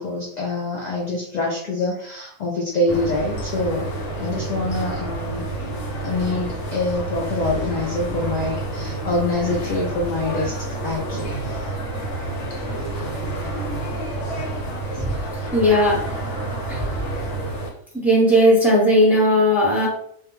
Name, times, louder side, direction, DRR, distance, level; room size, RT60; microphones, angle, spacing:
voice 1, 0.0-5.7 6.0-10.5 10.8-11.7 14.9-15.0, left 2 dB, 60° left, -2 dB, 0.4 m, -25 dB
sound 1, 2.9-17.7, right 2 dB, 75° left, 1.0 m, -29 dB
voice 2, 15.5-16.2 16.7-16.9 17.9-19.9, equal, ahead, -7 dB, 0.8 m, -17 dB
2.3 x 2.1 x 3.0 m, 0.67 s
omnidirectional pair, 1.3 m